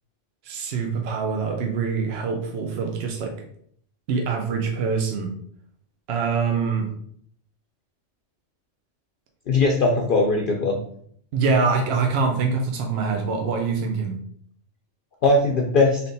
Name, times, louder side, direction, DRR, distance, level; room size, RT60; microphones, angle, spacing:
voice 1, 0.4-3.3 4.1-5.3 6.1-6.9 11.3-14.2, right 5 dB, 60° right, 2 dB, 0.8 m, -24 dB
voice 2, 9.5-10.8 15.2-16.0, left 2 dB, 55° left, 0 dB, 0.6 m, -19 dB
3.5 x 2.8 x 3.9 m, 0.64 s
omnidirectional pair, 1.3 m